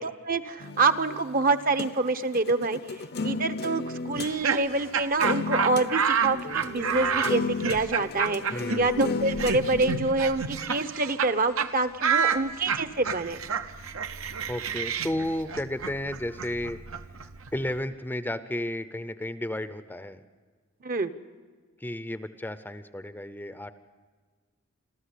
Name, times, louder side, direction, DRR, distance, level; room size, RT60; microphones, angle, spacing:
voice 1, 0.0-2.8 3.2-13.4 20.8-21.1, right 3 dB, 40° right, 11 dB, 0.9 m, -26 dB
sound 1, 0.6-4.4 4.8-4.9 5.2-5.9 6.2-10.0, left 4 dB, 50° left, 0.7 m, -34 dB
Laughter, 4.1-11.3 11.6-11.7 12.0-17.7, right 6 dB, 75° right, 1.0 m, -29 dB
voice 2, 8.5-9.1 14.5-16.8 17.5-20.2 21.8-23.7, left 1 dB, 10° left, 12 dB, 0.6 m, -33 dB
27.5 x 13.5 x 8.3 m, 1.5 s
head